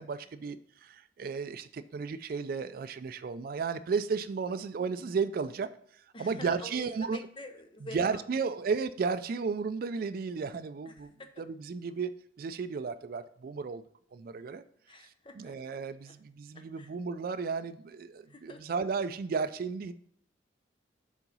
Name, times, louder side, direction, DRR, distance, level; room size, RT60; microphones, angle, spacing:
voice 1, 0.0-5.7 6.0-7.2 7.9-11.1 11.4-13.8 14.1-14.6 15.0-19.9, right 5 dB, 50° right, 13 dB, 0.3 m, -34 dB
voice 2, 6.1-8.2 10.9-11.1 14.9-15.5 16.5-16.9 18.3-18.6, left 1 dB, 30° left, 6 dB, 0.8 m, -46 dB
7.3 x 4.0 x 5.3 m, 0.63 s
head